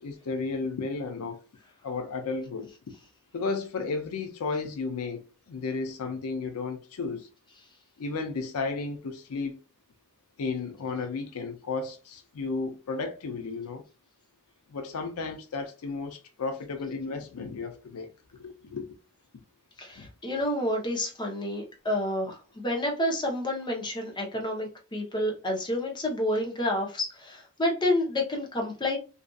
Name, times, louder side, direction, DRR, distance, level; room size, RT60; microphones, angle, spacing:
voice 1, 0.0-1.4 1.8-2.7 3.3-5.2 5.5-7.3 8.0-9.6 10.4-13.8 14.7-19.0 20.0-20.1, left 4 dB, 90° left, 0.5 m, -33 dB
voice 2, 19.8-29.0, left 1 dB, 20° left, 0.7 m, -29 dB
2.7 x 2.4 x 2.3 m
head